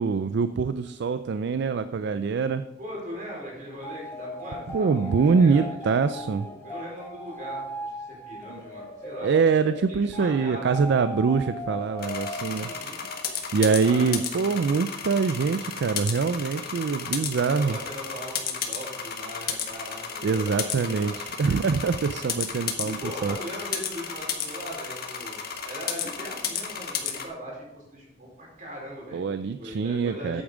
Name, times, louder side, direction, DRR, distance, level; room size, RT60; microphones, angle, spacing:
voice 1, 0.0-2.6 4.7-6.5 8.5-8.6 9.2-12.7 13.3-17.8 20.2-23.4 29.1-30.4, right 5 dB, 65° right, 11 dB, 0.4 m, -24 dB
voice 2, 2.8-5.6 6.1-9.3 9.9-11.0 12.4-13.0 13.8-14.4 17.5-21.2 22.8-29.2 29.6-30.4, equal, 45° right, -3 dB, 4.4 m, -40 dB
sound 1, 3.8-13.6, equal, 10° left, 1.4 m, -38 dB
sound 2, 12.0-27.2, left 7 dB, 55° left, 1.5 m, -33 dB
8.8 x 8.8 x 5.0 m, 0.93 s
head